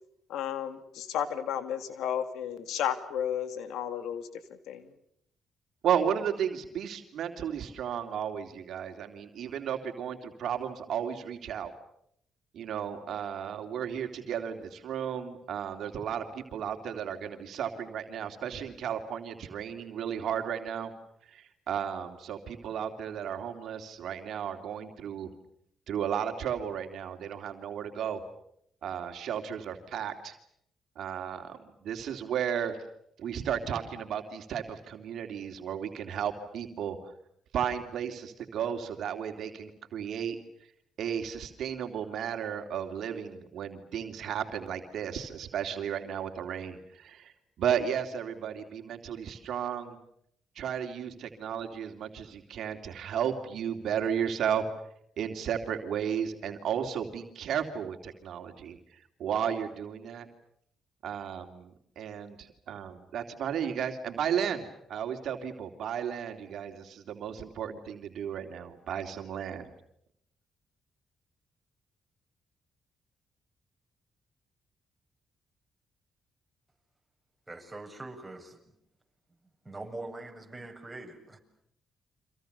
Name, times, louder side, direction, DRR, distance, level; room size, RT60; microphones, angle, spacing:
voice 1, 0.3-4.3 4.7-4.8, left 9 dB, 80° left, 11 dB, 2.2 m, -33 dB
voice 2, 5.8-11.7 12.5-20.9 21.3-25.3 25.9-28.2 28.8-30.3 31.0-32.8 33.2-37.0 37.5-40.4 41.0-50.0 50.6-54.6 55.2-60.3 61.0-64.6 64.9-69.7, right 8 dB, 70° right, 5 dB, 2.9 m, -34 dB
voice 3, 77.5-78.7 79.6-81.4, right 2 dB, 15° right, 2 dB, 7.5 m, -43 dB
30.0 x 26.0 x 6.8 m, 0.71 s
supercardioid pair, 65°, 0 cm